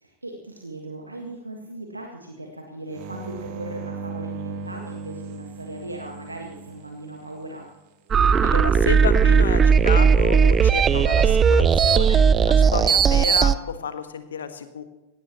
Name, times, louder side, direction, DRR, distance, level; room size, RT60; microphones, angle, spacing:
voice 1, 0.0-7.7, right 1 dB, 80° right, 1 dB, 1.7 m, -38 dB
sound 1, 2.9-7.6 10.8-11.4, right 4 dB, 45° right, 1.9 m, -37 dB
sound 2, 8.1-13.6, right 6 dB, 20° right, 0.5 m, -17 dB
voice 2, 8.4-14.8, left 7 dB, 65° left, 10 dB, 1.4 m, -31 dB
17.0 x 16.5 x 3.1 m, 1.0 s
figure-of-eight pair, 90°, 0 cm